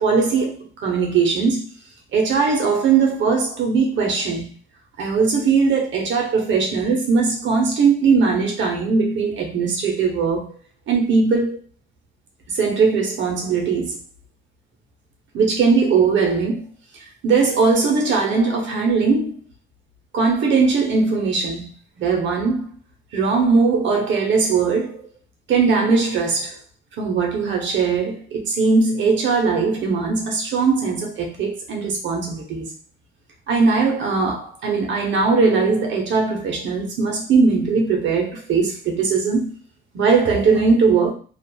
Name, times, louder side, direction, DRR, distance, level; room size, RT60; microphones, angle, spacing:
voice 1, 0.0-1.7 2.1-4.5 5.0-10.5 10.9-11.6 12.5-14.0 15.3-16.6 17.2-19.4 20.1-21.7 22.0-22.7 23.1-25.0 25.5-26.5 27.0-32.6 33.5-39.5 39.9-41.1, right 4 dB, 70° right, 0.9 m, -19 dB
2.9 x 2.4 x 2.2 m
cardioid pair, 90°, 20 cm